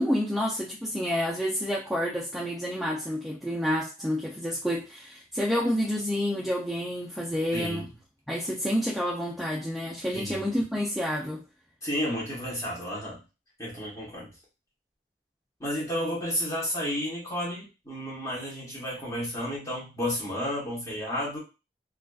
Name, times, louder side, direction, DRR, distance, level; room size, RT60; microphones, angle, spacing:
voice 1, 0.0-7.9 8.3-11.4, equal, ahead, -5 dB, 0.3 m, -29 dB
voice 2, 7.5-7.9 10.1-10.5 11.8-13.2 13.6-14.3 15.6-21.4, equal, 20° left, -4 dB, 1.0 m, -32 dB
2.4 x 2.3 x 2.2 m, 0.30 s
head